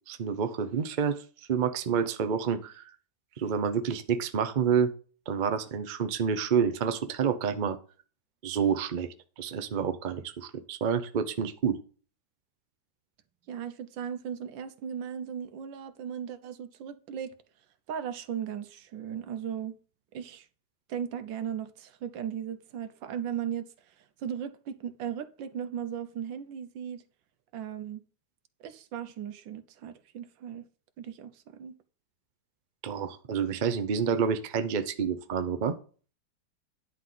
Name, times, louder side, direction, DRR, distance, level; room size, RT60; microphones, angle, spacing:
voice 1, 0.1-1.2 1.5-2.9 3.4-4.9 5.3-7.8 8.4-9.1 9.4-11.8 32.8-35.8, right 7 dB, 50° right, 0.5 m, -28 dB
voice 2, 13.5-17.3 17.9-19.7 20.1-20.5 20.9-23.7 24.2-27.0 27.5-28.0 28.6-30.6 31.0-31.7, right 8 dB, 80° right, 1.5 m, -37 dB
10.5 x 4.0 x 7.6 m
omnidirectional pair, 2.0 m